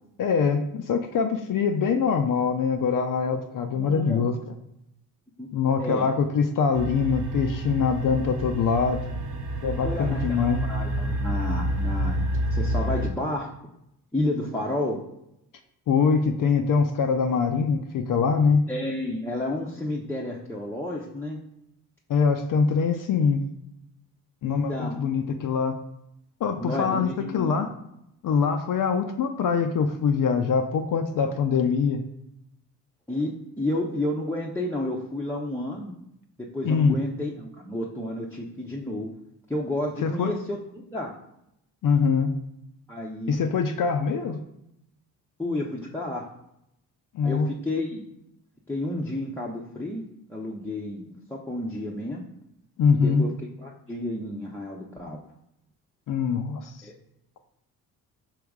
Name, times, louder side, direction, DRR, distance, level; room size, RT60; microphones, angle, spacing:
voice 1, 0.2-4.6 5.5-9.0 9.6-10.6 15.9-18.6 22.1-23.4 24.4-25.7 26.4-27.7 28.2-32.0 36.6-37.0 40.0-40.3 41.8-42.3 43.3-44.4 47.1-47.5 52.8-53.3 56.1-56.7, left 5 dB, 45° left, 6 dB, 0.5 m, -23 dB
voice 2, 3.7-4.2 5.4-5.5 5.8-6.1 9.6-12.2 12.5-13.5 14.1-15.1 18.7-21.4 24.4-25.1 26.6-27.6 33.1-35.9 36.5-39.1 39.5-41.1 42.9-43.4 45.4-46.3 47.2-48.0 48.7-50.0 50.3-52.2 52.9-53.3 53.6-55.2 56.8-56.9, left 1 dB, 5° left, -3 dB, 0.6 m, -31 dB
sound 1, 6.7-13.1, right 1 dB, 40° right, 0.8 m, -28 dB
4.8 x 3.0 x 3.5 m, 0.81 s
hypercardioid pair, 45°, 47 cm